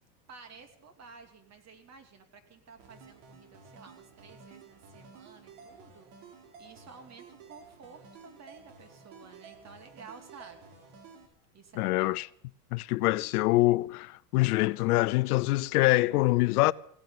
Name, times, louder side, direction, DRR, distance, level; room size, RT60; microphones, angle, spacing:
voice 1, 0.3-10.6 10.9-11.1 11.5-12.2, right 5 dB, 35° right, 2.9 m, -52 dB
sound 1, 2.8-11.3, right 5 dB, 60° right, 4.0 m, -53 dB
voice 2, 11.8-12.3 12.7-16.7, left 20 dB, 70° left, 0.6 m, -25 dB
17.0 x 9.1 x 9.0 m
hypercardioid pair, 95°, 47 cm